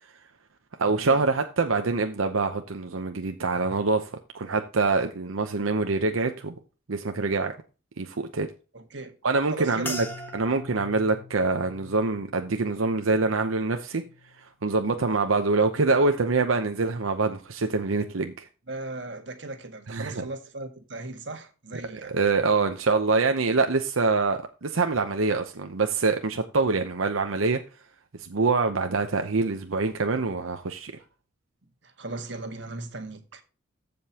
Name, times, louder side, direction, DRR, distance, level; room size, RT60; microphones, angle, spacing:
voice 1, 0.8-6.5 6.9-7.5 8.0-8.5 9.2-10.1 10.3-14.0 14.4-18.4 19.9-20.2 22.1-27.6 28.2-30.9, right 3 dB, 90° right, 0.8 m, -25 dB
voice 2, 8.7-9.2 9.5-10.0 18.7-22.2 31.8-33.4, right 2 dB, 60° right, 1.6 m, -37 dB
sound 1, 9.8-14.4 14.7-15.3 15.9-16.2, left 2 dB, 10° left, 1.6 m, -42 dB
14.5 x 5.3 x 2.9 m
head